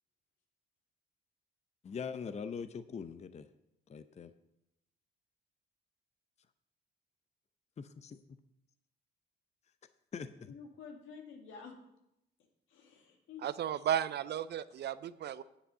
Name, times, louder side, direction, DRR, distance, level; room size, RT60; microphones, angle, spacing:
voice 1, 1.8-3.5 3.9-4.3 7.8-8.2 10.1-10.5, left 6 dB, 35° left, 11 dB, 0.6 m, -42 dB
voice 2, 10.5-11.7 12.7-13.5, left 6 dB, 85° left, 2 dB, 2.1 m, -50 dB
voice 3, 13.4-15.4, right 10 dB, 60° right, 16 dB, 0.5 m, -34 dB
10.0 x 7.8 x 5.5 m, 0.84 s
cardioid pair, 90°, 20 cm